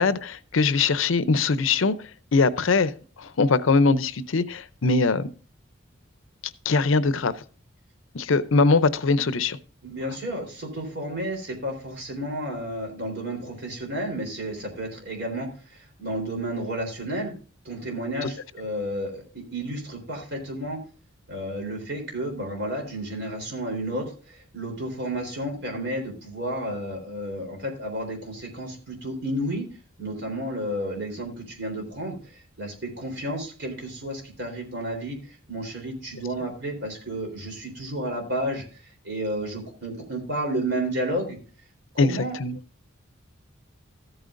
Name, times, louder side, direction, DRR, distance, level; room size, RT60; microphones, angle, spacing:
voice 1, 0.0-1.9 2.3-2.9 3.2-5.3 6.6-7.3 8.1-9.6 42.0-42.6, left 4 dB, 75° left, 0.6 m, -21 dB
voice 2, 9.8-17.3 17.6-20.8 21.3-29.7 30.0-35.2 35.5-41.4 41.9-42.4, right 1 dB, 55° right, 3.8 m, -32 dB
14.0 x 9.0 x 2.5 m
head